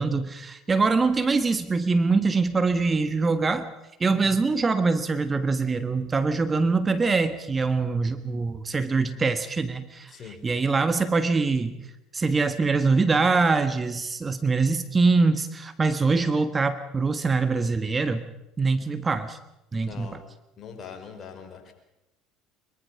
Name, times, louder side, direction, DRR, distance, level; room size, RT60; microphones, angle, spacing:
voice 1, 0.0-3.7 4.0-11.8 12.1-18.3 18.6-19.4 19.7-20.2, right 4 dB, 25° right, 11 dB, 1.4 m, -24 dB
voice 2, 19.8-20.2 20.6-21.7, left 6 dB, 40° left, 5 dB, 4.8 m, -42 dB
23.0 x 22.5 x 5.8 m, 0.92 s
hypercardioid pair, 65°, 0 cm